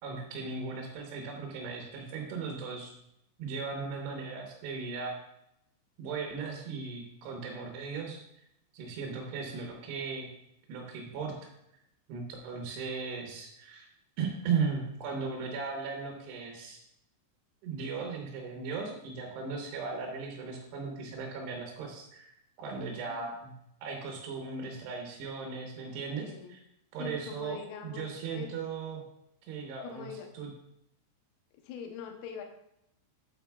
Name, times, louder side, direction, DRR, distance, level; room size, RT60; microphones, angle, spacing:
voice 1, 0.0-2.9 3.4-5.1 6.0-8.2 8.7-10.3 10.7-11.5 12.1-13.9 14.2-16.8 17.6-23.5 23.8-26.6 26.9-29.0 29.5-30.5, right 5 dB, 70° right, 0 dB, 3.0 m, -37 dB
voice 2, 26.2-26.6 27.0-28.5 29.8-30.3 31.7-32.4, left 7 dB, 80° left, 3 dB, 2.2 m, -43 dB
8.7 x 8.1 x 2.3 m, 0.80 s
omnidirectional pair, 5.5 m